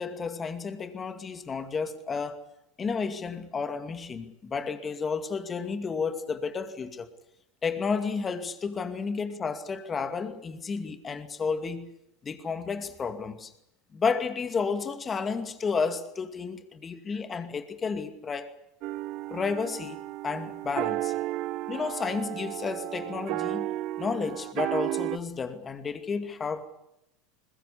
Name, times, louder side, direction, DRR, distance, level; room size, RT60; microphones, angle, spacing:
voice 1, 0.0-2.5 2.8-7.1 7.6-11.9 12.2-13.5 13.9-18.5 19.3-20.0 20.2-21.1 21.7-26.7, left 5 dB, 25° left, 2.4 m, -32 dB
sound 1, 18.8-25.2, right 16 dB, 55° right, 1.0 m, -33 dB
21.0 x 21.0 x 8.3 m
supercardioid pair, 115°, 0 cm